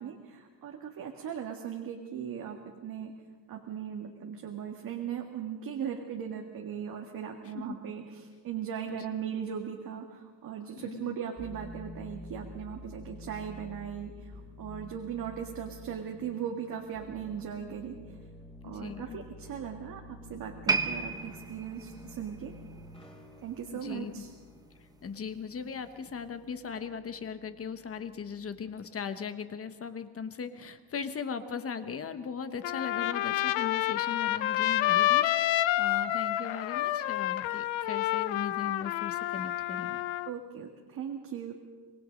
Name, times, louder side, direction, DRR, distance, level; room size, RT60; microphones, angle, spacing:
voice 1, 0.0-3.1 3.5-18.2 18.6-22.5 23.4-24.3 40.3-41.5, right 8 dB, 50° right, 1 dB, 2.0 m, -38 dB
voice 2, 8.9-9.3 10.8-11.2 18.6-19.2 23.7-24.1 25.0-40.0, left 6 dB, 30° left, 9 dB, 1.2 m, -39 dB
sound 1, 11.4-28.8, left 1 dB, 15° left, 3.1 m, -49 dB
sound 2, 20.7-24.0 24.3-24.5 25.2-25.3, right 4 dB, 10° right, 1.0 m, -34 dB
Trumpet, 32.6-40.3, left 14 dB, 85° left, 0.9 m, -29 dB
26.0 x 20.0 x 5.3 m, 1.5 s
cardioid pair, 145°, 44 cm